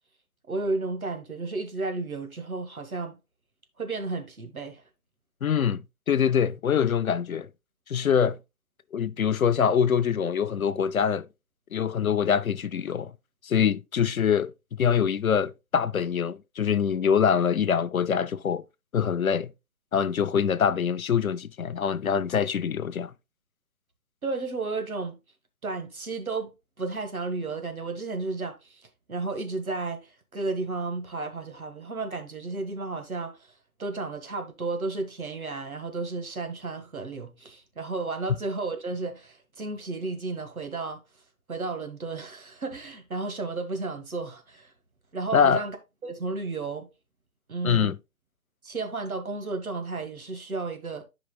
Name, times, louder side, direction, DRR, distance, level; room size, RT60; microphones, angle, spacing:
voice 1, 0.5-3.2 3.8-4.8 24.2-25.2 25.6-28.8 29.1-33.4 33.8-41.0 41.5-44.7 45.1-45.8 46.0-46.9 47.5-47.9 48.6-51.0, right 3 dB, 70° right, 1.7 m, -33 dB
voice 2, 5.4-5.8 6.1-7.5 7.9-8.4 8.9-11.3 11.7-13.1 13.4-14.5 14.8-18.6 18.9-19.5 19.9-23.1 45.3-45.6 47.6-48.0, left 7 dB, 70° left, 0.6 m, -24 dB
11.5 x 5.0 x 2.2 m
figure-of-eight pair, 140°, 44 cm